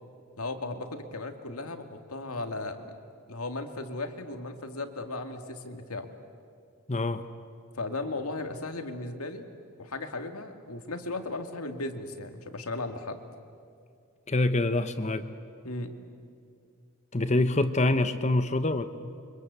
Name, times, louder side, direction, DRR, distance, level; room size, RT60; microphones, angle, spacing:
voice 1, 0.4-3.0 3.3-6.1 7.7-9.5 9.8-13.2 15.6-16.0, left 2 dB, 85° left, 6 dB, 2.3 m, -36 dB
voice 2, 6.9-7.2 14.3-15.3 17.1-18.9, left 2 dB, 30° left, 10 dB, 1.0 m, -25 dB
29.0 x 24.5 x 8.2 m, 2.4 s
head